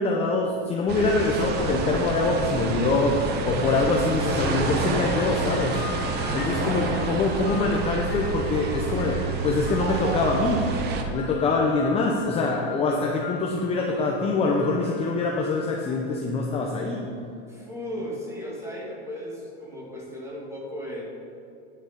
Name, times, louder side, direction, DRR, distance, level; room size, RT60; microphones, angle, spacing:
voice 1, 0.0-5.8 6.3-10.7 11.1-17.0, left 3 dB, 20° left, 0 dB, 0.7 m, -24 dB
sound 1, 0.9-11.0, right 4 dB, 30° right, 0.9 m, -28 dB
sound 2, 4.2-16.2, left 10 dB, 60° left, 0.8 m, -41 dB
voice 2, 6.5-7.0 17.5-21.0, equal, 10° right, -4 dB, 2.2 m, -36 dB
9.7 x 6.6 x 5.2 m, 2.6 s
supercardioid pair, 145°, 31 cm